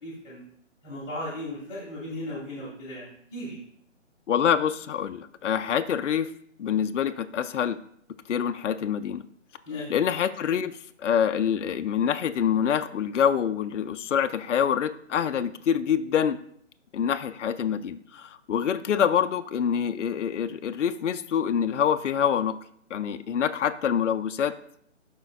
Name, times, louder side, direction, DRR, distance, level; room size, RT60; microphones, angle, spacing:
voice 1, 0.0-0.4 0.8-3.6 9.7-9.9, left 1 dB, 20° left, -9 dB, 2.0 m, -36 dB
voice 2, 4.3-6.3 6.6-7.8 8.3-9.2 9.9-10.7 11.0-16.4 16.9-22.6 22.9-24.5, left 8 dB, 70° left, 9 dB, 0.5 m, -26 dB
12.0 x 4.4 x 2.3 m, 0.66 s
figure-of-eight pair, 150°, 37 cm